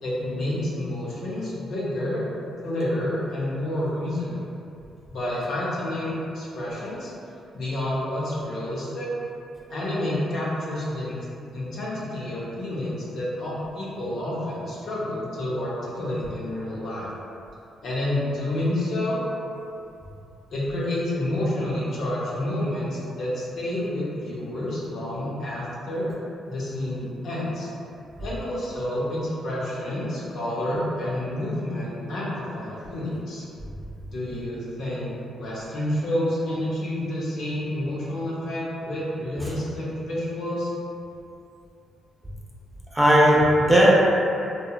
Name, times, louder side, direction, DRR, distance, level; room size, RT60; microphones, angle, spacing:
voice 1, 0.0-2.2 2.6-4.4 5.1-7.1 7.5-9.1 9.7-11.2 11.5-17.1 17.8-19.2 20.5-26.1 26.5-27.7 28.2-33.4 34.1-40.7, left 1 dB, 65° left, -7 dB, 0.6 m, -29 dB
voice 2, 42.9-43.9, equal, 10° right, -6 dB, 0.4 m, -17 dB
2.8 x 2.1 x 2.2 m, 2.7 s
cardioid pair, 110°, 0 cm